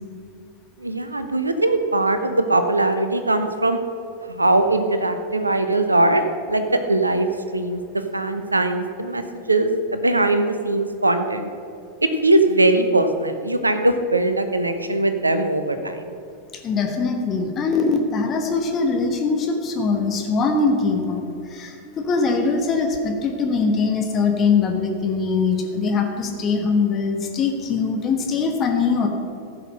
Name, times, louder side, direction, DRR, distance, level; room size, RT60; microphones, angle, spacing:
voice 1, 0.8-3.8 4.3-6.2 6.5-7.8 8.1-9.2 9.5-11.5 12.0-16.1, right 2 dB, 80° right, 8 dB, 0.8 m, -20 dB
voice 2, 16.6-29.1, left 4 dB, 30° left, 3 dB, 1.3 m, -22 dB
15.0 x 5.8 x 6.4 m, 2.6 s
figure-of-eight pair, 90°, 0 cm